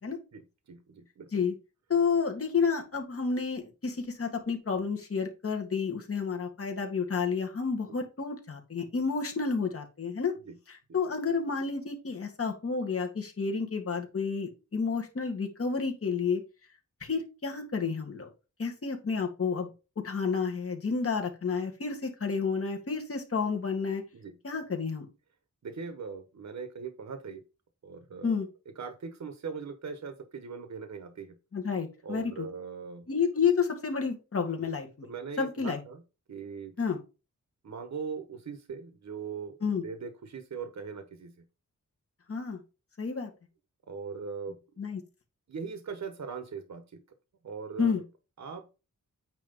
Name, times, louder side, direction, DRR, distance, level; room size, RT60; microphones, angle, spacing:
voice 1, 0.3-1.3 10.4-10.6 24.1-24.4 25.6-27.4 27.8-28.3 28.8-31.3 32.0-33.0 34.6-34.7 35.0-36.0 36.3-36.7 37.6-39.5 39.8-41.3 43.9-44.6 45.5-46.8 47.4-48.0 48.4-48.7, right 5 dB, 60° right, 8 dB, 1.1 m, -40 dB
voice 2, 1.9-10.3 10.7-16.4 17.0-18.3 18.6-19.7 20.0-24.0 24.4-25.1 28.2-28.5 31.5-32.5 33.1-35.1 35.4-35.8 36.8-37.0 39.6-39.8 42.3-42.6 43.0-43.3 44.8-45.0 47.8-48.0, left 5 dB, 45° left, 2 dB, 2.0 m, -30 dB
9.0 x 3.1 x 5.4 m, 0.29 s
wide cardioid pair, 135°, 32 cm